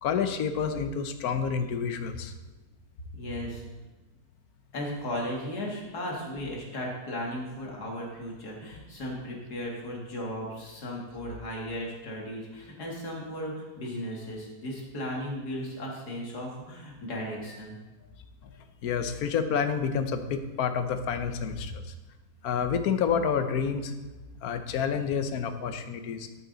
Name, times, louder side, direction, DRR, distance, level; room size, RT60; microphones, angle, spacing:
voice 1, 0.0-2.3 18.8-21.8 22.4-23.9 24.4-26.3, left 6 dB, 70° left, 9 dB, 1.3 m, -29 dB
voice 2, 3.2-3.6 4.7-17.8, equal, 90° left, -2 dB, 2.7 m, -36 dB
13.0 x 8.5 x 4.0 m, 1.1 s
omnidirectional pair, 1.7 m